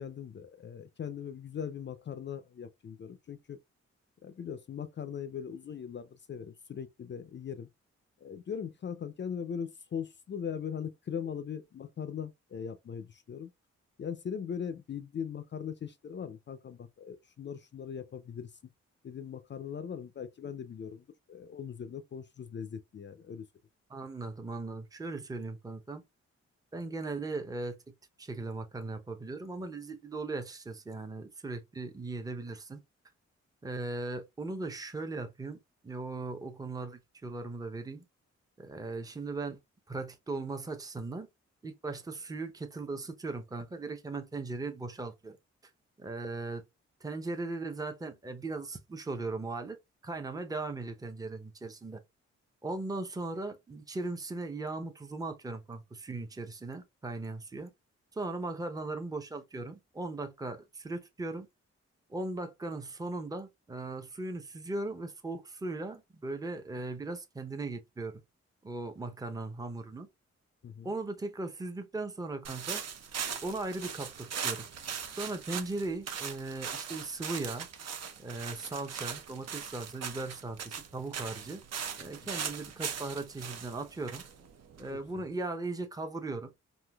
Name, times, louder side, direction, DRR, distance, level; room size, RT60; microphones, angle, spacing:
voice 1, 0.0-3.6 4.2-7.7 8.2-13.5 14.0-18.5 19.0-23.5 70.6-70.9 84.9-85.2, left 7 dB, 40° left, 0.4 m, -40 dB
voice 2, 23.9-26.0 26.7-27.8 28.2-32.8 33.6-38.0 38.6-39.6 39.9-41.3 41.6-45.4 46.0-46.6 47.0-49.8 50.0-52.0 52.6-57.7 58.1-61.5 62.1-68.1 68.6-70.1 70.8-72.8 73.4-74.7 75.2-77.7 78.2-81.6 82.0-84.2 84.8-86.5, right 3 dB, 15° right, 0.6 m, -38 dB
sound 1, 72.4-85.2, right 7 dB, 60° right, 0.7 m, -40 dB
3.7 x 2.6 x 2.2 m
cardioid pair, 60°, 29 cm